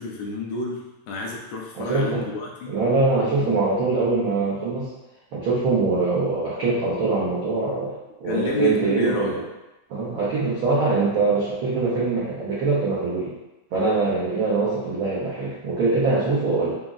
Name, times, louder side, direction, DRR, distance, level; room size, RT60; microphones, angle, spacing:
voice 1, 0.0-2.8 3.4-3.6 8.2-9.5, left 3 dB, 80° left, -2 dB, 1.8 m, -30 dB
voice 2, 1.7-2.3 2.7-4.9 5.3-9.4 9.9-13.3 13.7-16.8, right 3 dB, 90° right, -8 dB, 1.1 m, -23 dB
5.0 x 2.0 x 3.6 m, 1.0 s
omnidirectional pair, 3.4 m